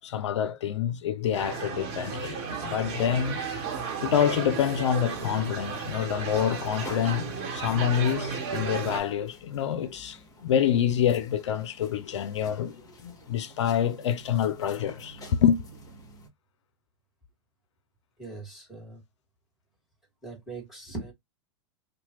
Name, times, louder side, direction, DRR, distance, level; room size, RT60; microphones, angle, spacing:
voice 1, 0.0-3.4 4.0-15.6, left 9 dB, 80° left, 0.5 m, -27 dB
sound 1, 1.3-9.0, right 5 dB, 45° right, 1.0 m, -34 dB
sound 2, 3.2-16.3, equal, 25° left, 1.3 m, -50 dB
voice 2, 18.2-19.0 20.2-21.1, right 3 dB, ahead, 1.7 m, -40 dB
2.9 x 2.1 x 2.8 m
hypercardioid pair, 110°, 15 cm